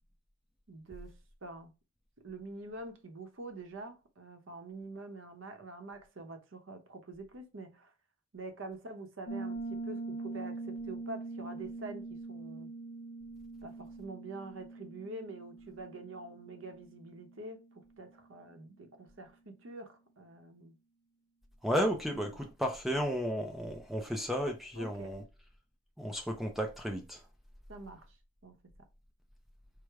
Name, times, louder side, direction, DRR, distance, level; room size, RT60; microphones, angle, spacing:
voice 1, 0.7-1.2 1.4-1.7 2.2-7.9 8.3-12.7 13.6-20.8 22.3-22.5 24.7-25.2 27.7-28.2 28.4-28.6, right 2 dB, 70° right, 0.8 m, -46 dB
Piano, 9.3-17.8, right 3 dB, 50° left, 0.5 m, -43 dB
voice 2, 21.6-25.2 26.0-27.2, equal, ahead, 0.4 m, -33 dB
4.7 x 2.1 x 4.5 m
head